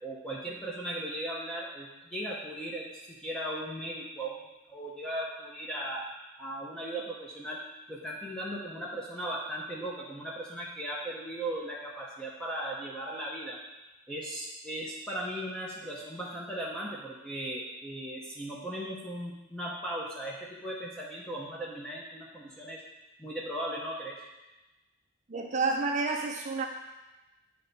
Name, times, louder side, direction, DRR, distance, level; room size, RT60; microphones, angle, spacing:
voice 1, 0.0-7.6 7.9-13.6 14.1-22.8 23.2-24.2, right 1 dB, 5° left, -5 dB, 0.7 m, -37 dB
voice 2, 25.3-26.7, right 3 dB, 35° right, 2 dB, 0.5 m, -29 dB
9.6 x 3.3 x 4.0 m, 1.1 s
head